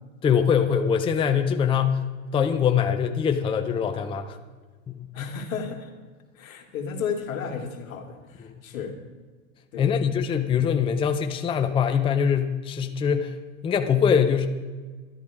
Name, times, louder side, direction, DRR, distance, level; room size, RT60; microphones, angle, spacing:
voice 1, 0.2-2.0 2.3-4.4 4.9-5.1 9.8-13.3 13.6-14.5, left 7 dB, 15° left, 6 dB, 0.6 m, -23 dB
voice 2, 5.1-5.9 6.4-8.9 9.7-10.1, left 6 dB, 75° left, 3 dB, 2.1 m, -33 dB
12.0 x 11.0 x 4.8 m, 1.4 s
hypercardioid pair, 115°, 41 cm